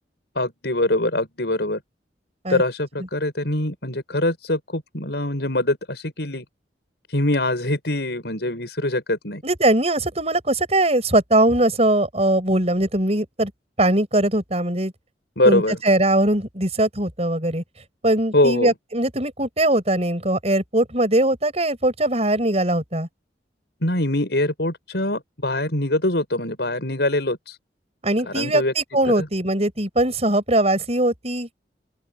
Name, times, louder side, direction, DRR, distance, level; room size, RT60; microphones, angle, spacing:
voice 1, 0.3-1.8 2.5-6.4 7.1-9.4 15.4-15.8 18.3-18.7 23.8-27.6 28.3-28.7 29.2-29.3, left 1 dB, 70° left, 6.9 m, -23 dB
voice 2, 9.4-13.5 13.8-14.9 15.4-17.6 18.0-23.1 28.0-31.6, right 1 dB, 35° right, 7.6 m, -21 dB
open air
head